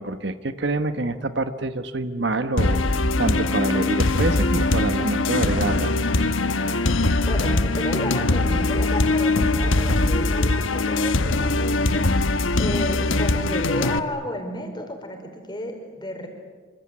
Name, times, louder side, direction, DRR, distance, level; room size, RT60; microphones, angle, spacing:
voice 1, 0.0-5.9, right 2 dB, 60° right, 10 dB, 1.2 m, -26 dB
sound 1, 2.6-14.0, left 2 dB, 85° left, 1.2 m, -21 dB
voice 2, 7.2-12.1 12.6-16.3, left 1 dB, 25° left, 4 dB, 5.1 m, -32 dB
27.0 x 25.5 x 8.6 m, 1.4 s
head